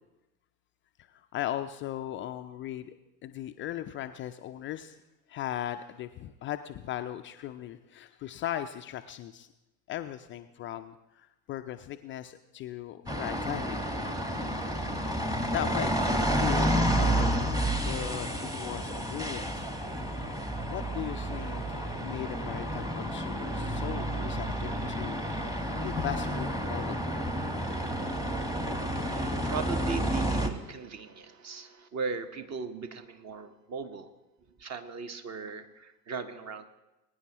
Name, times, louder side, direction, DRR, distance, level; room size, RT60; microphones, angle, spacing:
voice 1, 1.1-3.0 3.2-5.0 5.3-9.5 9.9-13.8 14.6-15.0 15.5-15.9 16.2-17.4 17.7-19.7 20.7-27.0, left 12 dB, 30° left, 8 dB, 0.3 m, -38 dB
sound 1, 13.1-30.5, equal, 10° right, 1.2 m, -30 dB
voice 2, 28.8-34.1 34.6-36.6, right 5 dB, 35° right, 9 dB, 1.1 m, -38 dB
21.5 x 9.6 x 2.9 m, 0.99 s
figure-of-eight pair, 70°, 48 cm